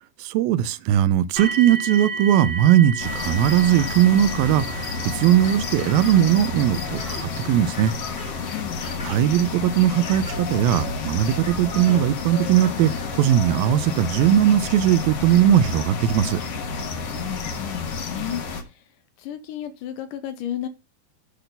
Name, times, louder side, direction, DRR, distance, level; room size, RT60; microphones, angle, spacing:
voice 1, 0.2-7.9 9.1-16.4, right 11 dB, 85° right, 2.5 m, -19 dB
sound 1, 1.4-14.2 15.1-15.2 15.8-15.9, right 4 dB, 55° right, 3.3 m, -36 dB
sound 2, 3.0-18.6, left 4 dB, 55° left, 2.0 m, -30 dB
sound 3, 5.4-6.5 6.7-7.2 7.7-8.4 8.8-9.4 10.0-10.6 11.4-12.0 12.6-13.2, left 1 dB, 5° left, 1.4 m, -40 dB
voice 2, 8.5-8.8 17.2-18.8 19.2-20.7, left 11 dB, 75° left, 2.1 m, -33 dB
8.6 x 4.0 x 6.7 m
omnidirectional pair, 4.2 m